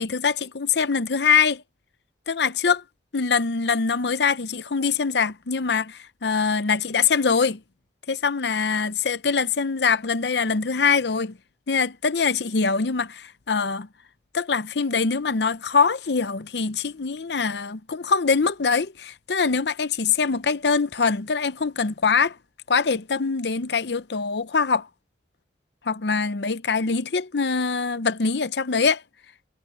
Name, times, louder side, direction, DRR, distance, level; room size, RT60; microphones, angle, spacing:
voice 1, 0.0-1.6 2.3-2.8 3.1-7.6 8.1-11.4 11.7-13.9 14.3-22.4 22.7-24.9 25.9-29.0, left 5 dB, 70° left, 0.7 m, -23 dB
head